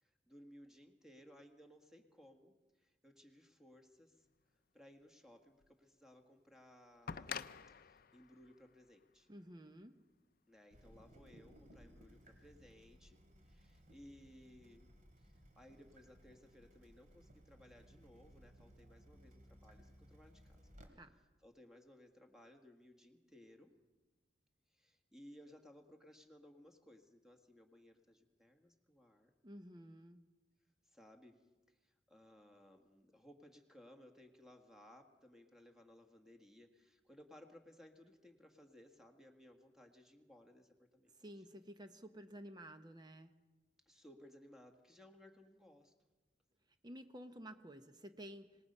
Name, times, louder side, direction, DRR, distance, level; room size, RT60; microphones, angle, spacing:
voice 1, 0.0-4.3 4.7-9.3 10.5-14.9 15.2-20.6 20.9-23.7 24.7-29.3 30.8-41.5 43.8-45.9, left 1 dB, 5° right, 4 dB, 1.7 m, -61 dB
sound 1, 5.6-5.7 7.1-9.9 11.1-11.2, left 7 dB, 55° left, 0.6 m, -48 dB
voice 2, 9.3-9.9 20.9-21.1 29.4-30.2 41.2-43.3 46.8-48.5, equal, 25° right, 7 dB, 0.9 m, -52 dB
Water tap faucet / Drip, 10.7-20.9, equal, 45° right, 2.9 m, -62 dB
26.5 x 19.0 x 5.5 m, 1.2 s
head